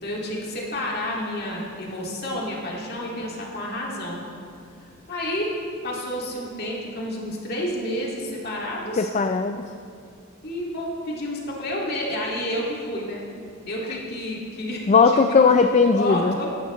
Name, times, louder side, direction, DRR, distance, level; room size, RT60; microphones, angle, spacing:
voice 1, 0.0-4.2 5.1-5.5 5.8-9.1 10.4-13.3 13.7-15.4 16.0-16.5, left 1 dB, 50° left, -3 dB, 2.2 m, -30 dB
voice 2, 9.0-9.7 14.9-16.4, left 4 dB, 35° left, 7 dB, 0.3 m, -18 dB
16.0 x 11.0 x 3.1 m, 2.4 s
head